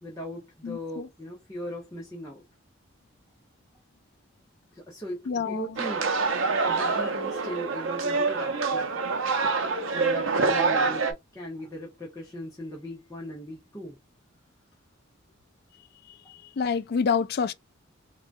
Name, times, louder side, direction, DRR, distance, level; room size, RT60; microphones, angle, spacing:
voice 1, 0.0-2.4 4.7-6.1 6.5-9.0 9.9-14.0, equal, 15° left, 0.8 m, -38 dB
voice 2, 0.6-1.1 5.3-5.8 6.5-6.8 16.1-17.5, left 6 dB, 50° left, 0.3 m, -29 dB
sound 1, 5.8-11.1, right 4 dB, 80° right, 0.6 m, -26 dB
3.7 x 2.3 x 2.5 m
head